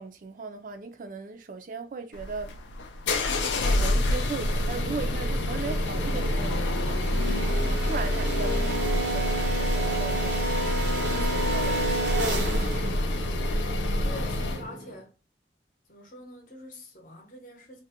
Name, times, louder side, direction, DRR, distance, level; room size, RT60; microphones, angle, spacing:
voice 1, 0.0-2.6 3.6-7.3 7.6-10.5 11.0-12.6, right 4 dB, 45° right, 0.4 m, -38 dB
sound 1, 2.1-14.7, left 1 dB, 85° left, 0.4 m, -27 dB
sound 2, 3.1-14.9, right 1 dB, 85° right, 0.7 m, -32 dB
voice 2, 13.9-15.2 15.9-17.8, left 1 dB, 45° left, 0.7 m, -45 dB
2.5 x 2.1 x 2.7 m
head